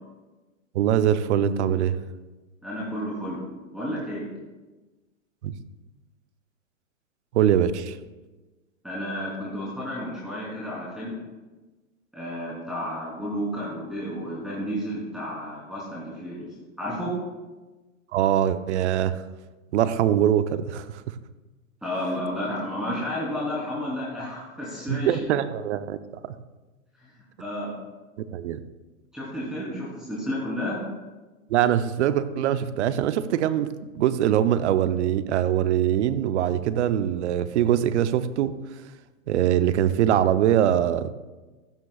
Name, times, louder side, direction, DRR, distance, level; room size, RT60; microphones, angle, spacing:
voice 1, 0.7-2.0 5.4-5.5 7.3-8.0 18.1-19.2 19.7-21.0 24.9-26.0 28.3-28.6 31.5-38.5 39.3-41.1, right 10 dB, 55° right, 12 dB, 0.9 m, -23 dB
voice 2, 2.6-3.4 3.7-4.3 8.8-11.1 12.1-16.5 16.8-17.1 21.8-25.2 27.0-27.1 27.4-27.7 29.1-30.8, equal, ahead, -9 dB, 3.5 m, -31 dB
16.0 x 13.0 x 2.4 m, 1.2 s
hypercardioid pair, 120°, 41 cm